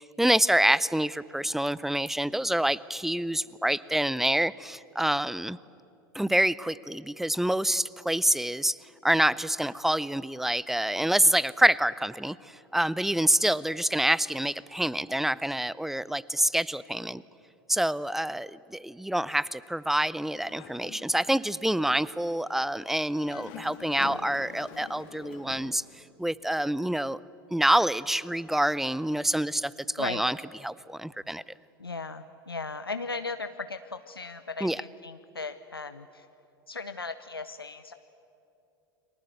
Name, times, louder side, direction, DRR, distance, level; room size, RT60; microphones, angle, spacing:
voice 1, 0.2-5.6 6.1-8.8 9.0-12.4 12.7-17.2 17.7-25.8 26.2-27.2 27.5-30.4 30.6-31.4 34.6-34.8, right 1 dB, ahead, 21 dB, 0.5 m, -26 dB
Dog, 20.2-21.3 21.7-21.9 23.1-25.8, left 9 dB, 50° left, 2.3 m, -45 dB
voice 2, 31.8-36.3 36.7-37.9, left 4 dB, 85° left, 10 dB, 0.7 m, -37 dB
30.0 x 23.0 x 8.0 m, 2.8 s
figure-of-eight pair, 85°, 12 cm